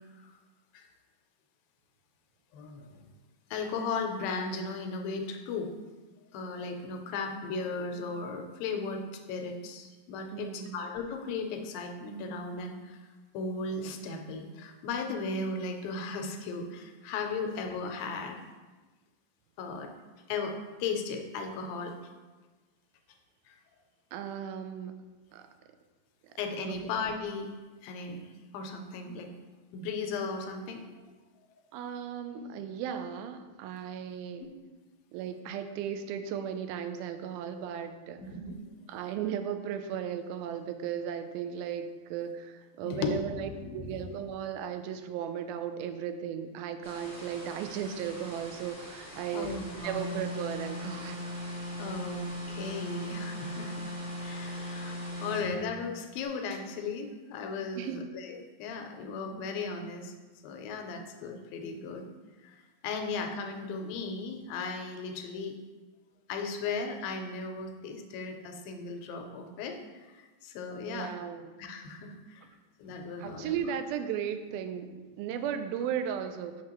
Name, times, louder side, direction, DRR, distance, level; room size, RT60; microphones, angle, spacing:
voice 1, 2.5-3.0 3.5-5.7 6.3-13.1 13.3-18.4 19.6-19.9 20.3-21.9 23.5-23.6 26.4-27.5 27.8-28.3 28.5-29.3 29.7-30.8 38.2-38.7 42.8-44.0 49.3-50.0 51.8-53.9 54.2-60.1 60.4-62.1 62.4-65.6 66.3-71.1 71.6-72.5 72.8-73.6, left 4 dB, 80° left, 4 dB, 2.4 m, -36 dB
voice 2, 10.3-10.8 24.1-24.9 25.3-25.5 26.2-26.3 31.7-34.5 35.1-38.2 38.9-51.2 57.8-58.1 70.8-71.5 73.2-76.6, right 8 dB, 85° right, 8 dB, 2.4 m, -36 dB
sound 1, 46.8-55.4, left 1 dB, 20° left, 0.6 m, -47 dB
sound 2, 49.8-55.6, left 1 dB, 65° right, 2.4 m, -38 dB
6.5 x 6.0 x 2.9 m, 1.3 s
omnidirectional pair, 4.2 m